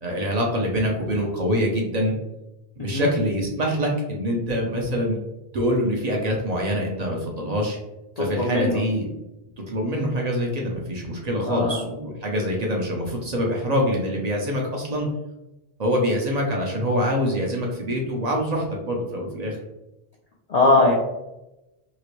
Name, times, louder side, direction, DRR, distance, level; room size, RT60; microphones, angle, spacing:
voice 1, 0.0-2.1 2.8-5.2 5.5-7.8 8.2-9.1 9.7-15.1 15.8-19.6, equal, 50° right, 0 dB, 0.6 m, -25 dB
voice 2, 2.8-3.1 8.2-8.8 11.5-11.8 20.5-20.9, left 2 dB, 50° left, -3 dB, 0.5 m, -20 dB
2.9 x 2.5 x 3.0 m, 0.96 s
omnidirectional pair, 1.0 m